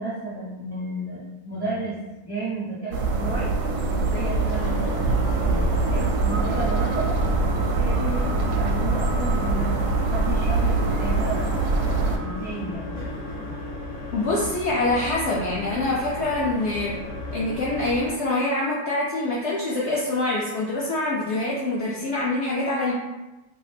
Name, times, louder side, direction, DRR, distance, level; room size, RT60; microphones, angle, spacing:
voice 1, 0.0-2.0 2.2-7.2 7.8-8.3 8.5-9.7 10.0-11.4 12.2-13.0, right 2 dB, 40° right, -9 dB, 0.5 m, -32 dB
sound 1, 2.9-12.2, right 3 dB, 80° right, 1.1 m, -23 dB
sound 2, 4.0-12.5, right 3 dB, 30° left, 0.6 m, -42 dB
sound 3, 4.4-18.1, left 2 dB, 45° left, 1.0 m, -35 dB
voice 2, 14.1-16.9 17.3-22.9, left 2 dB, 70° left, -5 dB, 0.7 m, -25 dB
2.7 x 2.4 x 3.3 m, 1.0 s
omnidirectional pair, 1.7 m